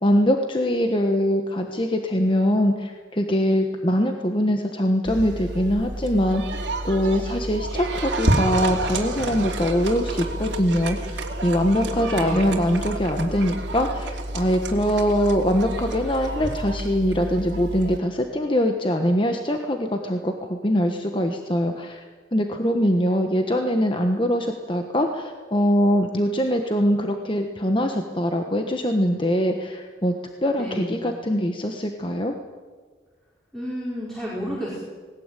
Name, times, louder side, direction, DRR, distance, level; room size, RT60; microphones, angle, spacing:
voice 1, 0.0-6.6 6.8-22.0 22.3-30.1 30.4-32.3, equal, 30° left, 4 dB, 1.3 m, -23 dB
sound 1, 5.1-18.0, right 2 dB, 85° right, 2.9 m, -29 dB
voice 2, 11.8-12.6 30.6-31.0 33.5-34.8, equal, ahead, -7 dB, 4.8 m, -31 dB
19.5 x 18.5 x 9.1 m, 1.5 s
head